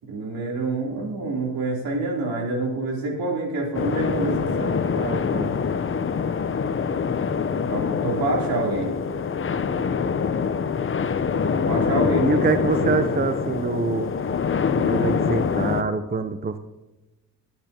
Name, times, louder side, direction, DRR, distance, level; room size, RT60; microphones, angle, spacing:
voice 1, 0.0-4.8 7.7-8.9 11.7-12.4 12.8-13.1, right 2 dB, 65° right, -1 dB, 3.6 m, -27 dB
sound 1, 3.7-15.8, left 6 dB, 35° left, 0.8 m, -25 dB
voice 2, 5.0-5.5 12.2-14.1 14.8-16.6, right 4 dB, 25° right, 10 dB, 0.7 m, -25 dB
19.5 x 8.8 x 2.9 m, 1.0 s
supercardioid pair, 55°, 38 cm